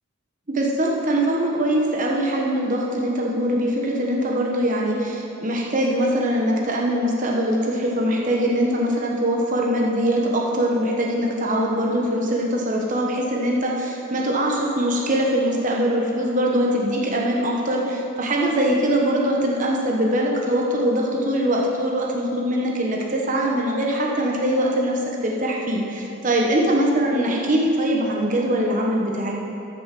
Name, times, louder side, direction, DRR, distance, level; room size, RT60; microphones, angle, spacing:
voice 1, 0.5-29.3, right 1 dB, 40° right, -2 dB, 1.0 m, -22 dB
13.0 x 6.7 x 5.9 m, 2.8 s
head